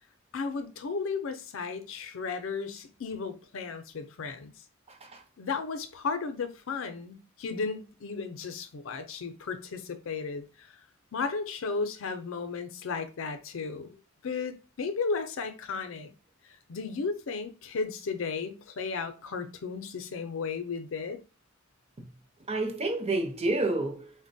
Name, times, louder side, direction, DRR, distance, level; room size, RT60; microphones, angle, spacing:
voice 1, 0.3-4.5 5.4-10.4 11.1-14.0 14.2-16.1 16.7-21.2, left 4 dB, 70° left, 0.5 m, -34 dB
voice 2, 4.9-5.2 22.0-22.1 22.5-24.1, right 2 dB, 30° right, 0.6 m, -29 dB
3.8 x 2.2 x 2.6 m
head